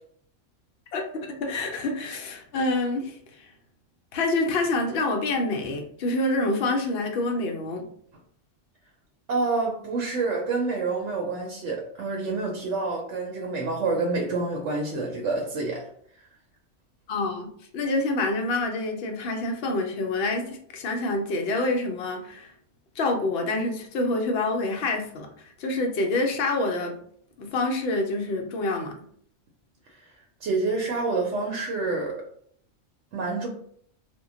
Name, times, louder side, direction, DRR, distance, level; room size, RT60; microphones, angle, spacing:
voice 1, 0.9-3.5 4.1-7.9 17.1-22.5 23.0-27.0 27.4-29.0, left 2 dB, 60° left, 3 dB, 0.7 m, -27 dB
voice 2, 9.3-15.9 30.4-32.2 33.1-33.5, right 3 dB, 75° right, -1 dB, 0.9 m, -27 dB
2.2 x 2.2 x 3.6 m, 0.63 s
omnidirectional pair, 1.3 m